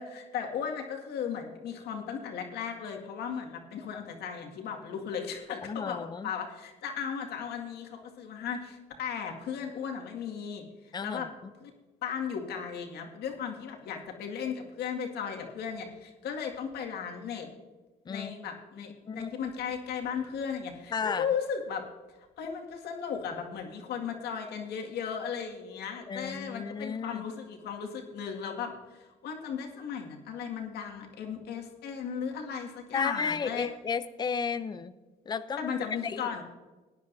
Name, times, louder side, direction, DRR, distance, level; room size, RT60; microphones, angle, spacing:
voice 1, 0.0-10.6 11.0-11.3 11.6-11.7 12.0-17.5 18.1-21.9 22.4-33.7 35.6-36.4, left 7 dB, 75° left, 2 dB, 2.0 m, -36 dB
voice 2, 5.6-6.3 10.9-11.3 18.1-18.3 19.1-19.3 20.9-21.3 26.1-27.2 32.9-34.9 35.3-35.7 36.0-36.4, left 6 dB, 25° left, 12 dB, 0.6 m, -33 dB
19.0 x 10.5 x 2.7 m, 1.2 s
cardioid pair, 110°, 17 cm